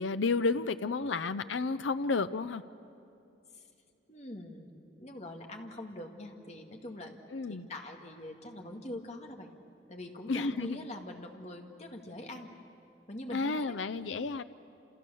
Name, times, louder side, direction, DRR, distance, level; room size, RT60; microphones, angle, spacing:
voice 1, 0.0-2.6 7.3-7.7 10.3-10.8 13.3-14.4, left 3 dB, 85° left, 12 dB, 0.6 m, -31 dB
voice 2, 4.1-7.2 7.5-9.5 9.9-12.5 13.1-13.8, left 1 dB, 35° left, 2 dB, 2.1 m, -44 dB
29.0 x 28.5 x 7.0 m, 2.7 s
head